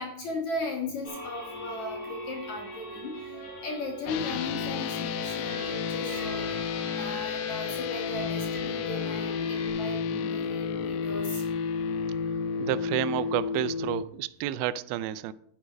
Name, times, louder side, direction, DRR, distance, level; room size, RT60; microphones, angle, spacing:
voice 1, 0.0-11.4, left 2 dB, 60° left, 2.1 m, -37 dB
sound 1, 1.0-9.7, equal, 20° left, 5.6 m, -42 dB
sound 2, 4.1-14.0, left 6 dB, 75° left, 2.9 m, -31 dB
voice 2, 12.6-15.3, right 13 dB, 85° right, 2.8 m, -30 dB
12.0 x 9.2 x 5.1 m
omnidirectional pair, 5.1 m